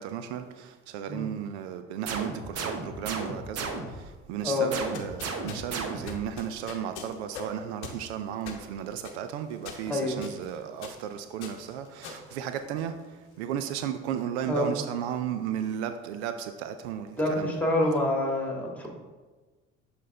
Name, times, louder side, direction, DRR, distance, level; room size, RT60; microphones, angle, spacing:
voice 1, 0.0-17.6, right 9 dB, 75° right, 0.5 m, -34 dB
sound 1, 2.1-4.1 4.7-6.3, right 4 dB, 45° right, 0.9 m, -35 dB
sound 2, 4.9-13.1, left 5 dB, 80° left, 0.8 m, -44 dB
voice 2, 9.9-10.2 14.5-14.8 17.2-18.9, left 1 dB, 5° left, 1.8 m, -27 dB
7.4 x 4.0 x 3.3 m
hypercardioid pair, 60°, 34 cm